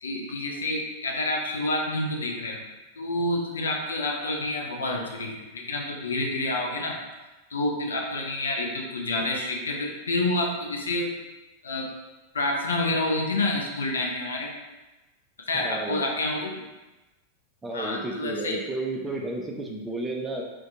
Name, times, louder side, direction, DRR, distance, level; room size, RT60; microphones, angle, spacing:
voice 1, 0.0-2.6 3.0-7.0 7.5-11.2 11.6-11.9 12.3-14.5 15.5-16.5 17.7-18.5, left 2 dB, 70° left, 1 dB, 0.4 m, -28 dB
voice 2, 15.5-16.1 17.6-20.4, right 2 dB, 10° right, 0 dB, 0.4 m, -32 dB
2.5 x 2.1 x 2.8 m, 1.1 s
figure-of-eight pair, 90°, 0 cm